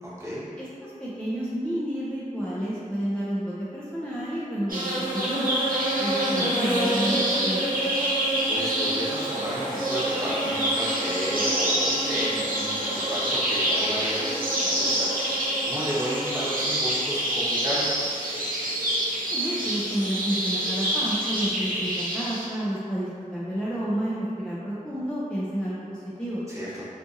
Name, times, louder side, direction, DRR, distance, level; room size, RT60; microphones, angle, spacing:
voice 1, 0.0-0.4 8.5-17.9 26.5-26.9, equal, 20° right, -10 dB, 0.9 m, -33 dB
voice 2, 0.6-5.5 6.0-7.8 19.3-26.4, equal, 5° left, -9 dB, 0.4 m, -30 dB
sound 1, 4.7-22.4, right 1 dB, 80° right, 0.7 m, -26 dB
2.6 x 2.4 x 2.6 m, 2.4 s
wide cardioid pair, 40°, 14 cm